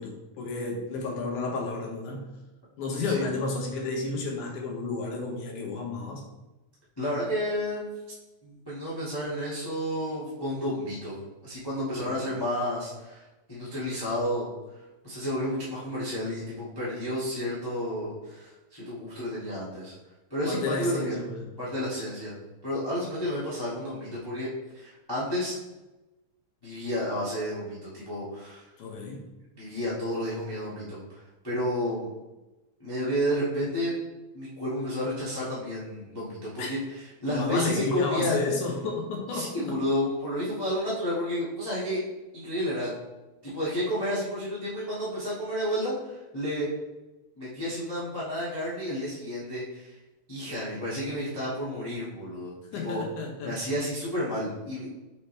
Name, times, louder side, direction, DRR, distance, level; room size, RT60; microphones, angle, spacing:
voice 1, 0.0-2.3 2.8-6.2 12.0-12.2 20.5-21.5 28.8-29.3 36.6-36.7 37.3-39.6 52.7-53.5, left 3 dB, 80° left, 0 dB, 2.5 m, -32 dB
voice 2, 7.0-7.9 8.4-11.1 11.4-13.2 13.5-14.5 15.0-19.9 20.3-21.2 21.6-22.4 22.6-24.5 24.7-25.6 26.6-28.7 29.5-32.1 32.8-33.9 34.3-36.8 37.2-38.4 39.3-42.0 42.3-42.9 43.4-46.7 47.4-49.9 50.3-53.0 53.4-54.9, equal, 10° left, -9 dB, 1.2 m, -31 dB
5.5 x 5.5 x 3.3 m, 1.1 s
omnidirectional pair, 3.5 m